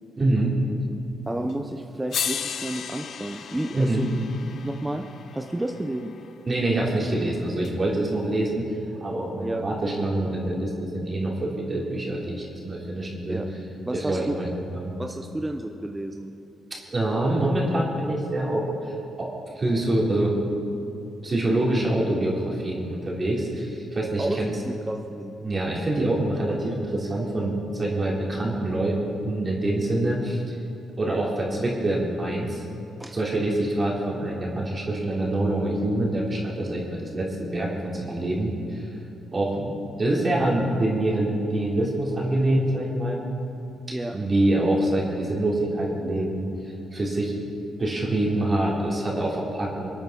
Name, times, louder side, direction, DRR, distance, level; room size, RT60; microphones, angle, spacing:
voice 1, 0.2-0.6 3.7-4.1 6.5-8.7 9.0-13.4 13.9-14.5 14.7-14.9 16.9-18.6 19.2-19.3 19.5-20.3 21.2-24.5 25.4-29.0 29.2-30.5 31.0-32.6 33.1-38.9 39.3-43.2 44.1-46.4 46.9-47.3 47.8-49.9, right 1 dB, 35° right, -4 dB, 3.3 m, -25 dB
voice 2, 1.3-4.1 4.6-5.1 5.3-6.1 9.4-9.7 13.3-13.5 13.8-14.4 15.0-16.3 24.2-24.4 24.6-25.4 31.0-31.3 33.0-33.2 43.9-44.2, right 1 dB, 15° right, 4 dB, 0.8 m, -31 dB
sound 1, 1.5-1.6 2.1-6.3 7.6-7.7, left 7 dB, 65° left, 0.7 m, -35 dB
24.5 x 8.9 x 4.0 m, 2.8 s
supercardioid pair, 55°, 0 cm